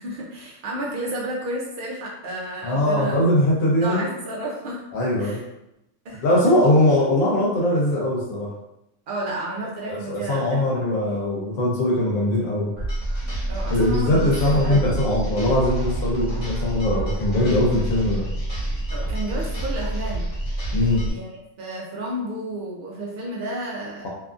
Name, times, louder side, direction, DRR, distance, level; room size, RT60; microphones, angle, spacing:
voice 1, 0.0-3.2 3.8-4.8 5.2-5.4 6.0-6.2 9.1-10.9 13.4-15.0 18.9-20.3 21.0-21.3 21.6-24.1, right 1 dB, 70° right, -4 dB, 0.5 m, -31 dB
voice 2, 2.6-4.1 4.9-5.4 6.2-8.5 9.9-12.7 13.7-18.2 20.7-21.1, left 1 dB, 80° left, -4 dB, 1.1 m, -21 dB
sound 1, 12.8-21.1, right 1 dB, 35° left, 1.2 m, -27 dB
2.7 x 2.3 x 2.4 m, 0.88 s
omnidirectional pair, 1.4 m